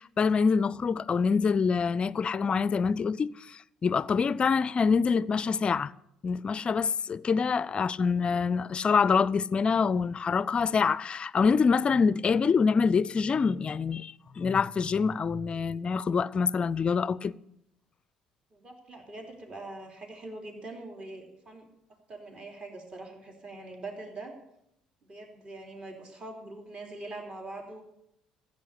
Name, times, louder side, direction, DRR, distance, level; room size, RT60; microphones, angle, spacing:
voice 1, 0.0-5.9 6.2-17.3, left 5 dB, 35° left, 0.4 m, -26 dB
voice 2, 18.5-21.7 22.1-24.3 25.1-27.8, right 2 dB, 35° right, 3.3 m, -43 dB
15.0 x 8.2 x 8.2 m
hypercardioid pair, 55°, 3 cm